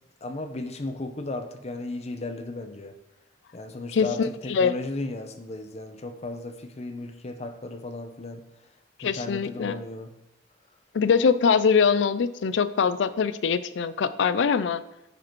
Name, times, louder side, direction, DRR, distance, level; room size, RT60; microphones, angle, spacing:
voice 1, 0.2-3.0 3.5-8.4 9.0-10.1, left 2 dB, 35° left, 8 dB, 0.7 m, -35 dB
voice 2, 3.9-4.7 9.0-9.8 10.9-14.8, left 6 dB, 80° left, 14 dB, 0.4 m, -23 dB
9.7 x 5.0 x 4.6 m, 0.93 s
head